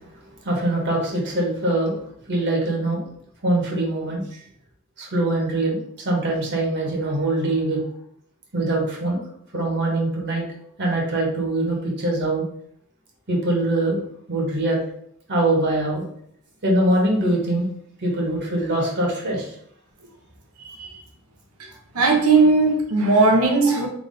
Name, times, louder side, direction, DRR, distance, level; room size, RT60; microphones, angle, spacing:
voice 1, 0.4-1.9 2.3-3.0 3.4-4.2 5.0-7.8 8.5-9.2 9.5-10.4 10.8-12.4 13.3-14.0 14.3-14.8 15.3-16.0 16.6-17.7 18.0-19.5, right 1 dB, 55° right, 1.3 m, -23 dB
voice 2, 20.6-21.0 21.6-23.9, right 3 dB, 90° right, 1.0 m, -18 dB
3.6 x 2.9 x 4.0 m
head